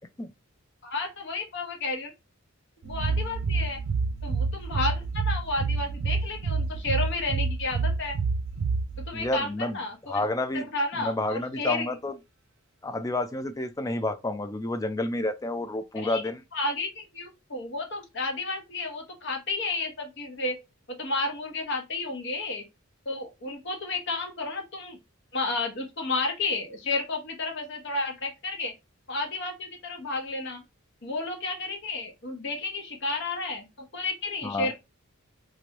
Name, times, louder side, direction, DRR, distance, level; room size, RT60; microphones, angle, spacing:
voice 1, 0.8-2.1 2.8-3.8 4.2-8.2 9.1-10.2 10.5-11.9 16.0-16.2 16.5-20.6 20.9-22.6 23.1-25.0 25.3-28.7 29.1-30.6 31.0-33.7 33.9-34.7, left 3 dB, 55° left, 1.0 m, -32 dB
sound 1, 2.8-9.3, right 4 dB, 75° right, 0.4 m, -28 dB
voice 2, 9.1-9.8 10.1-10.6 11.0-12.2 12.8-16.4 34.4-34.7, left 2 dB, 15° left, 0.3 m, -30 dB
3.1 x 2.5 x 2.9 m
head